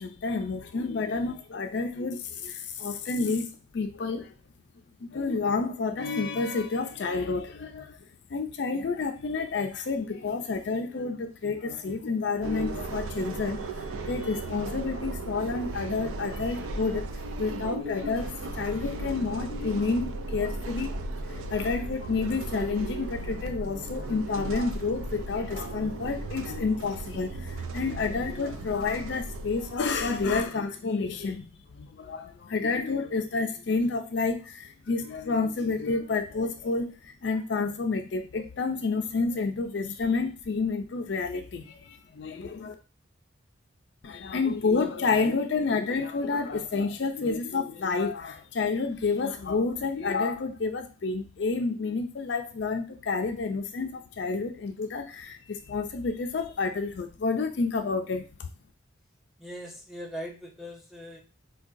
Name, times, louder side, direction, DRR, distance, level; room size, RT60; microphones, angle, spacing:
voice 1, 0.0-4.3 5.0-8.0 8.3-17.0 17.4-31.5 31.7-42.7 44.0-58.3, left 4 dB, 60° left, 6 dB, 0.4 m, -29 dB
sound 1, 12.4-30.5, right 2 dB, 85° right, 0.4 m, -36 dB
voice 2, 59.4-61.2, equal, ahead, 0 dB, 0.4 m, -40 dB
4.5 x 2.3 x 2.5 m, 0.33 s
head